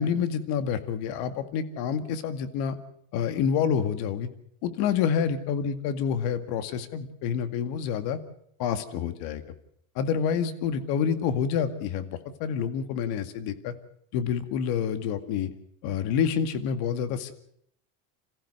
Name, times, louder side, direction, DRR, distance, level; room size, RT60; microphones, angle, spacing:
voice 1, 0.0-2.8 3.1-4.3 4.6-8.2 8.6-9.4 10.0-13.7 14.1-15.5 15.8-17.3, left 7 dB, 60° left, 11 dB, 2.1 m, -28 dB
27.5 x 15.0 x 6.7 m, 0.70 s
supercardioid pair, 125°, 42 cm